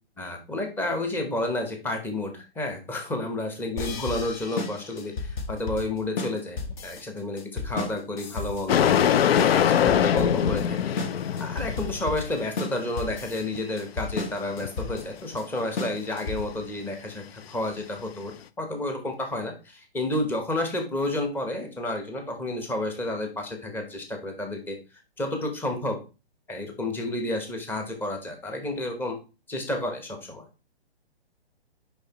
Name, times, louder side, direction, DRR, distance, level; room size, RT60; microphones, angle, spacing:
voice 1, 0.2-8.9 9.3-11.0 11.4-24.8 25.2-26.0 26.5-29.2 29.5-30.5, left 1 dB, 5° left, 4 dB, 0.8 m, -31 dB
sound 1, 3.8-16.7, left 4 dB, 45° left, 1.1 m, -33 dB
sound 2, 8.7-12.2 13.1-13.2 13.4-13.6 14.6-15.4 18.0-18.1, left 9 dB, 65° left, 0.5 m, -22 dB
6.5 x 5.1 x 2.9 m, 0.31 s
hypercardioid pair, 140°, 32 cm